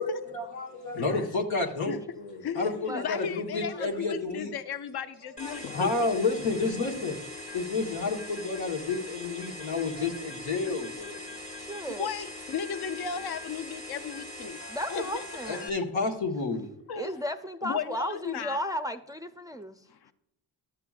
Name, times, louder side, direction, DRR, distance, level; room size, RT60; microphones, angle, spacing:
voice 1, 0.0-4.5 5.4-7.2 7.5-11.2 15.4-16.6, left 3 dB, 80° left, 2 dB, 1.3 m, -30 dB
voice 2, 2.4-6.1 12.0-14.6 14.9-15.2 16.9-17.2 17.6-18.6 19.9-20.1, left 6 dB, 55° left, 10 dB, 0.7 m, -35 dB
sound 1, 5.4-15.7, left 1 dB, 15° left, 1.0 m, -42 dB
voice 3, 11.7-12.1 14.7-15.7 17.0-19.8, equal, 10° right, 8 dB, 0.4 m, -34 dB
11.5 x 6.8 x 2.4 m, 0.81 s
supercardioid pair, 55°, 46 cm